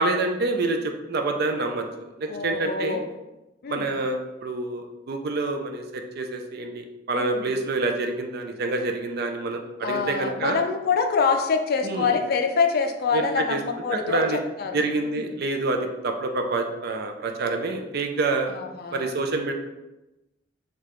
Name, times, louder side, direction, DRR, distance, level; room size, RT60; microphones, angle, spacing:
voice 1, 0.0-3.0 3.7-10.6 11.8-12.2 13.1-13.6 13.9-14.4 14.7-18.5 18.9-19.5, right 3 dB, 55° right, 4 dB, 0.4 m, -27 dB
voice 2, 2.2-3.1 3.6-3.9 7.1-7.5 9.8-14.3 14.6-15.3 18.5-19.1, left 5 dB, 55° left, 6 dB, 0.4 m, -25 dB
4.8 x 2.3 x 3.0 m, 0.99 s
head